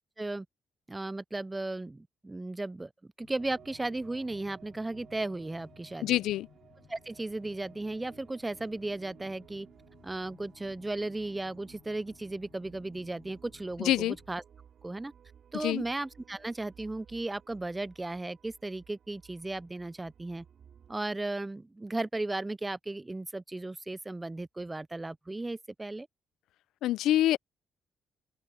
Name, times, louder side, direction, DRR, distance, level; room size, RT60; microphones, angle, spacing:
voice 1, 0.9-2.9 3.2-6.2 6.9-9.7 10.0-14.4 14.8-15.1 15.5-20.4 20.9-26.1, right 2 dB, 15° right, 0.4 m, -35 dB
sound 1, 3.2-14.4, left 9 dB, 65° left, 5.6 m, -60 dB
sound 2, 3.4-20.9, right 8 dB, 60° right, 5.8 m, -58 dB
voice 2, 6.0-6.5 13.8-14.2 15.5-15.8 26.8-27.4, left 13 dB, 85° left, 0.4 m, -26 dB
open air
cardioid pair, 90°, 0 cm